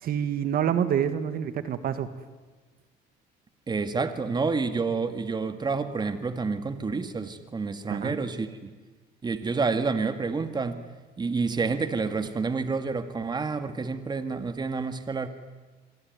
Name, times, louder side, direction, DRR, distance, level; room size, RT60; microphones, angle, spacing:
voice 1, 0.0-2.1 7.9-8.2, right 9 dB, 60° right, 11 dB, 1.8 m, -27 dB
voice 2, 3.7-8.7 9.2-10.8 11.2-15.3, right 4 dB, 25° right, 9 dB, 2.0 m, -29 dB
27.5 x 22.5 x 9.6 m, 1.3 s
cardioid pair, 110°, 17 cm